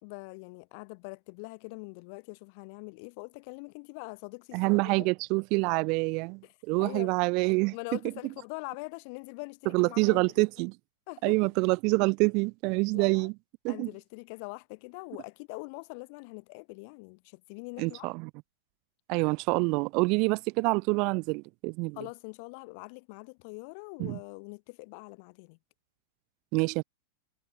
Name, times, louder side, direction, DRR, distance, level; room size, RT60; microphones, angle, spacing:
voice 1, 0.0-5.1 6.8-7.1 7.7-10.2 11.1-11.5 12.9-13.3 13.7-18.1 22.0-25.6, left 33 dB, 50° left, 4.6 m, -43 dB
voice 2, 4.5-7.7 9.7-10.7 11.2-13.3 13.6-13.9 17.8-18.3 19.1-22.0 24.0-24.2 26.5-26.8, right 29 dB, 45° right, 1.0 m, -26 dB
hypercardioid pair, 135°, 0 cm